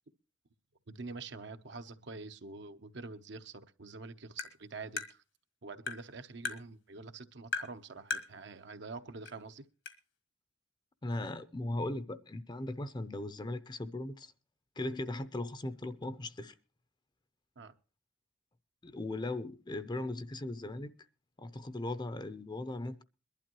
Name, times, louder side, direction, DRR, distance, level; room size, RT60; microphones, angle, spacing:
voice 1, 0.9-5.2 5.6-9.7 17.6-17.8, right 3 dB, 65° right, 0.8 m, -46 dB
Tap, 4.4-4.5 5.0-5.1 5.9-6.0 6.4-6.6 7.5-7.7 8.1-8.3 9.3-9.4 9.9-10.0, left 4 dB, 75° left, 1.7 m, -36 dB
voice 2, 11.0-14.3 14.8-16.5 18.8-20.9 21.4-23.0, left 2 dB, 25° left, 0.6 m, -38 dB
22.0 x 11.5 x 3.0 m
head